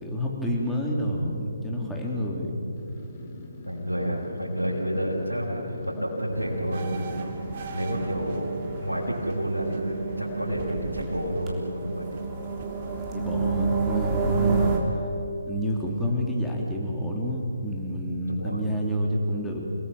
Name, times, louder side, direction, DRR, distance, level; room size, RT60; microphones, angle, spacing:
voice 1, 0.0-2.6 13.1-14.7 15.5-19.8, equal, ahead, -3 dB, 3.3 m, -28 dB
sound 1, 2.7-9.1, left 2 dB, 30° left, 4.5 m, -43 dB
voice 2, 3.7-7.2 7.7-12.1 14.5-14.8 18.3-18.7, equal, 90° right, -7 dB, 5.8 m, -30 dB
sound 2, 6.3-14.8, right 5 dB, 15° right, 3.5 m, -30 dB
sound 3, 6.7-13.1, right 3 dB, 40° right, 2.4 m, -42 dB
29.0 x 19.5 x 7.2 m, 2.9 s
figure-of-eight pair, 140°, 0 cm